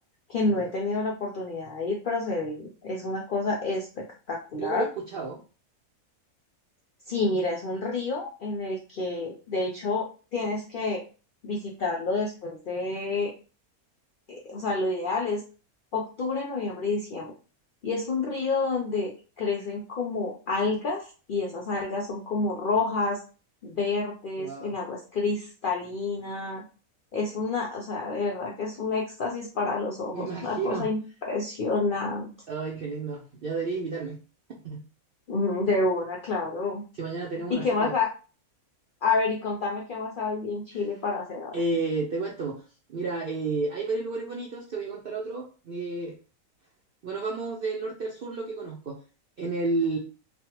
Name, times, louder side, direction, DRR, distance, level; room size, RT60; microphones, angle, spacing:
voice 1, 0.3-4.9 7.1-11.0 11.4-13.3 14.3-15.4 15.9-17.3 17.8-23.2 23.6-26.6 27.1-32.3 35.3-36.8 37.5-38.1 39.0-41.6, left 3 dB, 90° left, -1 dB, 0.4 m, -29 dB
voice 2, 4.6-5.4 24.4-24.7 30.1-30.9 32.5-34.2 34.6-34.8 37.0-37.9 41.5-42.6 42.9-46.1 47.0-49.0 49.4-50.0, right 3 dB, 70° right, -2 dB, 0.5 m, -31 dB
3.2 x 2.2 x 2.8 m, 0.36 s
omnidirectional pair, 1.6 m